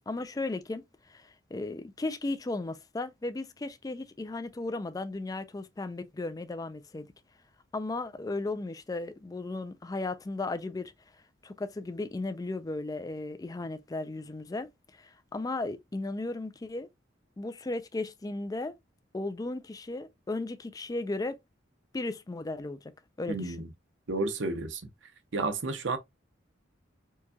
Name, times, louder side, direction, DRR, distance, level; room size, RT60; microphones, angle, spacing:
voice 1, 0.1-7.1 7.7-10.9 11.4-16.9 17.4-18.8 19.1-21.4 21.9-22.9 23.2-23.6, left 2 dB, 20° left, 0.3 m, -35 dB
voice 2, 23.3-23.7 24.1-24.8 25.3-26.0, right 3 dB, 75° right, 0.8 m, -31 dB
4.5 x 2.3 x 2.7 m
head